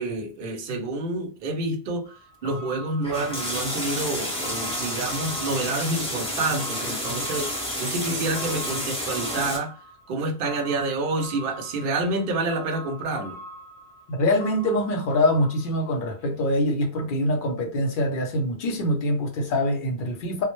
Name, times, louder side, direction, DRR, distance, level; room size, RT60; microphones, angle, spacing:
voice 1, 0.0-2.1 2.4-9.8 10.1-13.4, right 2 dB, 60° right, 0.7 m, -28 dB
sound 1, 2.0-16.2 16.5-16.6, equal, 80° left, 1.0 m, -42 dB
sound 2, 3.0-9.6, equal, 5° left, 0.8 m, -30 dB
voice 2, 14.1-20.4, left 1 dB, 55° left, 0.7 m, -24 dB
2.1 x 2.0 x 2.9 m
omnidirectional pair, 1.1 m